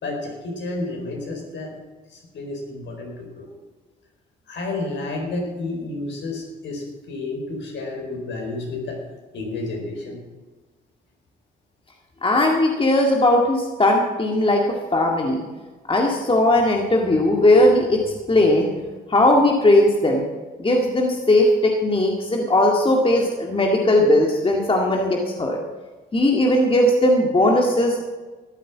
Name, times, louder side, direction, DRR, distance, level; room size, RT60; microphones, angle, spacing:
voice 1, 0.0-1.7 2.1-3.5 4.5-9.0 9.3-10.2, left 2 dB, 65° left, 1 dB, 4.7 m, -31 dB
voice 2, 12.2-15.4 15.9-18.0 18.3-18.7 19.1-20.2 20.6-25.6 26.1-28.0, left 1 dB, 25° left, 0 dB, 2.0 m, -18 dB
14.0 x 9.2 x 7.4 m, 1.3 s
supercardioid pair, 65°, 20 cm